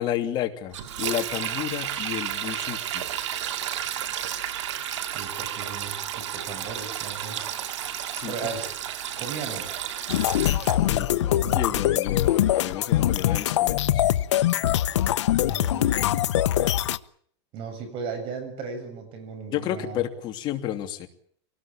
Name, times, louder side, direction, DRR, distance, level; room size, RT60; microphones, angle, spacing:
voice 1, 0.0-3.0 8.1-8.3 10.8-11.1 11.5-14.0 19.5-21.1, left 12 dB, 30° left, 5 dB, 2.9 m, -31 dB
Sink (filling or washing), 0.7-10.8, right 10 dB, 85° right, 2.7 m, -32 dB
voice 2, 5.0-7.5 8.2-8.7 9.2-9.8 10.5-11.7 15.5-16.3 17.5-20.0, right 5 dB, 35° right, 7 dB, 7.5 m, -37 dB
sound 1, 10.1-17.0, left 12 dB, 90° left, 1.0 m, -23 dB
24.5 x 19.0 x 8.9 m, 0.62 s
supercardioid pair, 155°, 15 cm